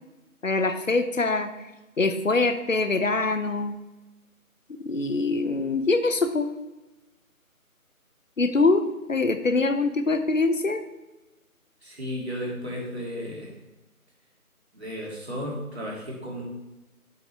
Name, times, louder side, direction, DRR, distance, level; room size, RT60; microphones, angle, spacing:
voice 1, 0.4-1.5 2.0-3.8 4.8-6.5 8.4-10.8, left 3 dB, 60° left, 9 dB, 0.9 m, -24 dB
voice 2, 11.8-13.5 14.7-16.4, equal, 45° right, -3 dB, 2.7 m, -34 dB
8.3 x 7.9 x 3.4 m, 1.1 s
figure-of-eight pair, 175°, 44 cm